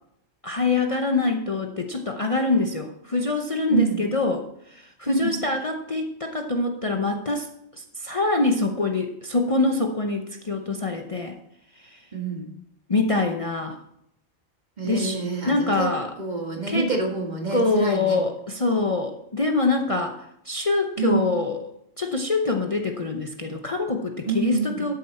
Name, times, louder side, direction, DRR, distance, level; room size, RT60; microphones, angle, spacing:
voice 1, 0.4-7.5 7.8-11.4 11.8-12.0 12.9-13.8 14.8-15.2 15.5-16.1 16.7-16.9 17.5-21.6 22.0-24.9, left 3 dB, 35° left, 3 dB, 0.8 m, -25 dB
voice 2, 3.7-4.1 5.0-5.4 12.1-12.5 14.8-15.9 16.2-18.2 21.0-21.4 24.2-24.8, right 4 dB, 40° right, 1 dB, 1.9 m, -27 dB
12.5 x 7.7 x 4.3 m, 0.75 s
omnidirectional pair, 1.1 m